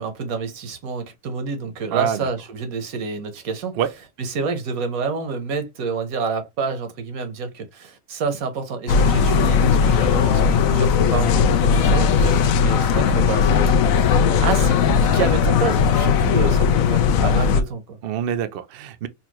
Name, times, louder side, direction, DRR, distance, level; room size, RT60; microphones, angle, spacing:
voice 1, 0.0-3.8 4.2-10.4 10.7-18.0, right 4 dB, 85° right, 1.4 m, -28 dB
voice 2, 1.9-2.3 3.8-3.9 10.5-10.8 12.2-12.3 18.0-19.1, right 9 dB, 65° right, 0.6 m, -26 dB
sound 1, 8.9-17.6, left 6 dB, 80° left, 1.0 m, -18 dB
4.2 x 2.3 x 2.9 m
omnidirectional pair, 1.5 m